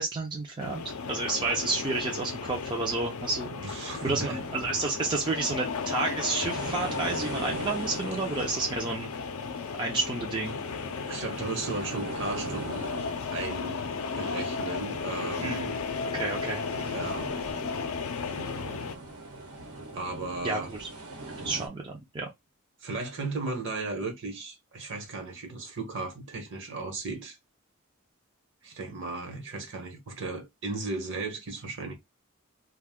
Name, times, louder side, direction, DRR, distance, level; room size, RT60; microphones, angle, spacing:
voice 1, 0.0-3.5 4.0-9.1 9.8-10.6 15.4-15.7 16.1-16.6 20.4-20.9 21.4-22.3, right 3 dB, 20° right, 0.4 m, -30 dB
sound 1, 0.6-19.0, left 5 dB, 65° left, 0.5 m, -35 dB
voice 2, 3.5-4.4 11.1-12.9 13.3-13.9 14.2-15.8 16.9-17.3 18.3-19.0 19.9-20.7 22.8-27.4 28.6-31.9, right 3 dB, 55° right, 1.1 m, -35 dB
sound 2, 3.9-21.7, right 2 dB, 85° right, 1.0 m, -42 dB
2.6 x 2.3 x 3.5 m
head